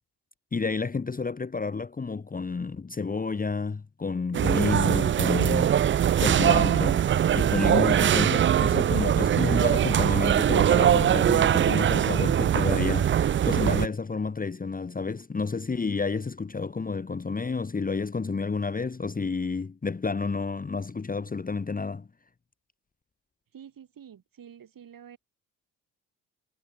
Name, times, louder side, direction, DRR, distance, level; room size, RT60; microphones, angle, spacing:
voice 1, 0.5-5.8 6.2-7.0 7.3-22.1, left 4 dB, 20° left, 1.3 m, -30 dB
sound 1, 4.3-13.9, right 10 dB, 25° right, 0.6 m, -22 dB
voice 2, 23.5-25.2, right 8 dB, 45° right, 6.5 m, -48 dB
figure-of-eight pair, 45°, 47 cm